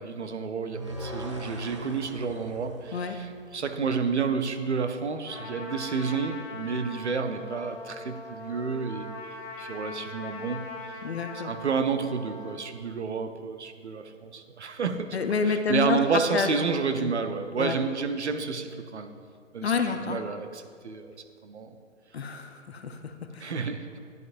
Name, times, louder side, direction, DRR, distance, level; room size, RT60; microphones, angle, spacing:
voice 1, 0.0-9.1 9.6-10.7 11.4-15.2 15.4-19.1 19.5-21.1 21.4-21.7 23.4-23.9, right 5 dB, 65° right, 8 dB, 0.7 m, -30 dB
sound 1, 0.7-3.9, left 1 dB, 25° right, 0.4 m, -40 dB
Trumpet, 5.3-12.6, left 2 dB, 10° left, 1.5 m, -41 dB
voice 2, 11.0-11.6 15.1-16.5 17.0-17.1 17.6-17.8 19.6-20.2 22.1-23.5, left 5 dB, 55° left, 7 dB, 0.7 m, -29 dB
10.5 x 6.0 x 2.5 m, 2.1 s
figure-of-eight pair, 130°, 37 cm